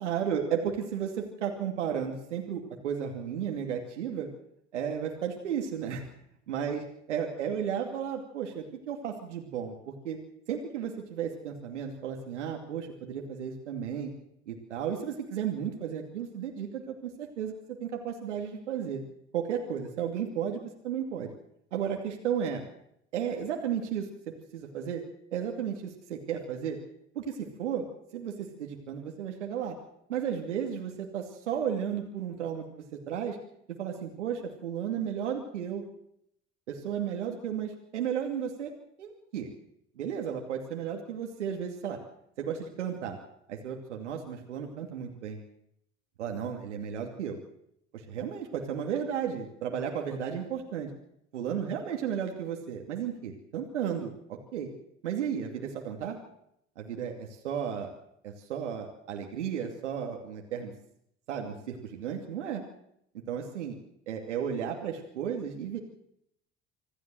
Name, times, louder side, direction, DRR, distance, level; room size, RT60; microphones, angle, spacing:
voice 1, 0.0-4.3 4.7-6.0 6.5-6.8 7.1-10.2 10.5-14.1 14.5-19.0 19.3-21.3 21.7-22.6 23.1-25.0 25.3-26.8 27.1-27.9 28.1-29.7 30.1-33.4 33.8-35.8 36.7-38.7 39.0-39.5 40.0-42.0 42.4-43.2 43.5-45.4 46.2-47.4 47.9-50.9 51.3-54.7 55.0-56.2 56.8-57.9 58.2-60.7 61.3-62.6 63.3-63.7 64.1-65.8, right 8 dB, 85° right, 2 dB, 2.7 m, -34 dB
26.0 x 15.0 x 7.7 m, 0.74 s
hypercardioid pair, 60°, 35 cm